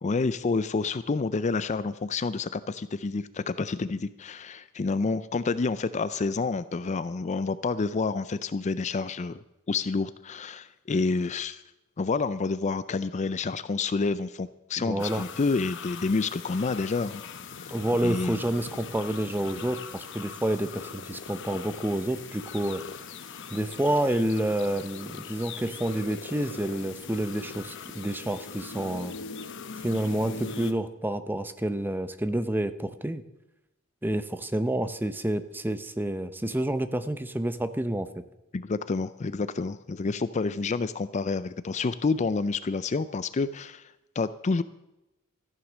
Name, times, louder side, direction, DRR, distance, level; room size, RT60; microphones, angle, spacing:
voice 1, 0.0-9.4 9.7-11.6 12.0-17.2 17.6-17.8 18.0-18.4 38.5-44.6, left 4 dB, 35° left, 14 dB, 0.4 m, -29 dB
voice 2, 14.8-15.2 17.7-22.8 23.5-29.2 29.8-33.2 34.0-38.1, right 1 dB, 10° right, 11 dB, 0.7 m, -29 dB
sound 1, 15.0-30.7, left 5 dB, 60° left, 1.0 m, -41 dB
14.5 x 10.0 x 6.2 m, 0.94 s
head